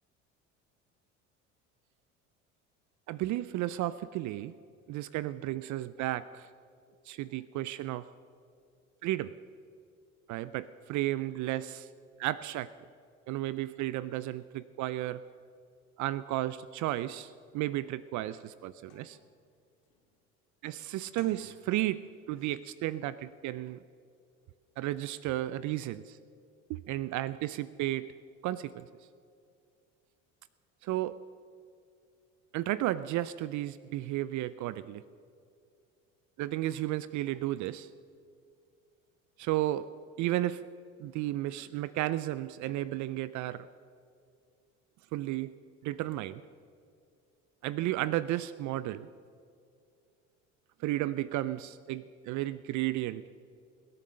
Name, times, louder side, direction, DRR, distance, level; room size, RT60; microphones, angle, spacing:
voice 1, 3.1-4.5 4.9-6.5 7.1-8.1 9.0-9.3 10.3-11.9 12.2-12.7 13.3-15.2 16.0-19.2 20.6-23.8 24.8-26.2 26.7-28.1 28.4-28.9 30.8-31.2 32.5-35.0 36.4-37.9 39.4-39.9 40.2-40.6 41.0-43.7 45.1-45.5 45.8-46.4 47.6-49.1 50.8-53.2, right 15 dB, 55° right, 16 dB, 0.5 m, -33 dB
sound 1, 16.9-17.1 17.6-17.7 18.1-19.4 19.8-20.2 21.0-22.0 22.3-22.6, left 5 dB, 75° left, 2.6 m, -58 dB
19.5 x 8.8 x 6.6 m, 2.4 s
hypercardioid pair, 75°, 36 cm